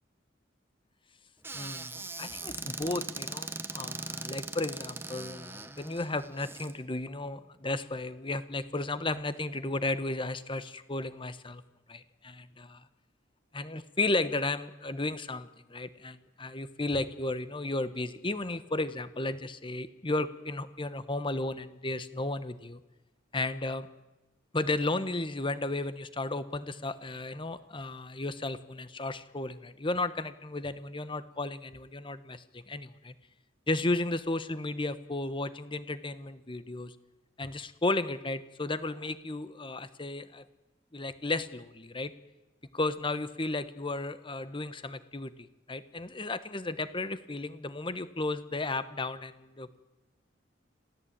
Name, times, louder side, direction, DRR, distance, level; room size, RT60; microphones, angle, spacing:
Squeak / Cupboard open or close, 1.4-6.7, right 3 dB, 15° right, 1.2 m, -40 dB
voice 1, 1.5-11.6 11.9-12.9 13.5-22.8 23.3-23.9 24.5-33.1 33.7-36.9 37.4-40.4 40.9-42.1 42.7-45.3 45.7-49.8, left 2 dB, 25° left, 13 dB, 1.2 m, -34 dB
26.5 x 17.0 x 8.9 m, 1.0 s
head